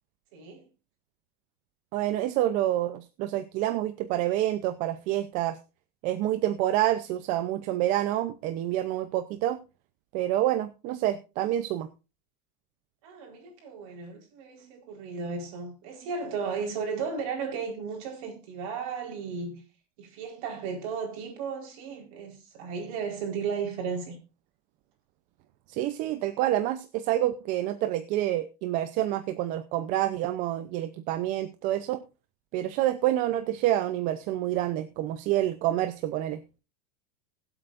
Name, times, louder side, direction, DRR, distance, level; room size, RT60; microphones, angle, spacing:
voice 1, 0.3-0.7 13.0-19.6 20.0-24.2, right 5 dB, 55° right, 4.5 m, -35 dB
voice 2, 1.9-5.6 6.0-9.6 10.1-11.9 25.7-32.0 32.5-36.4, right 13 dB, 40° right, 0.7 m, -28 dB
21.0 x 7.9 x 2.6 m
supercardioid pair, 160°, 20 cm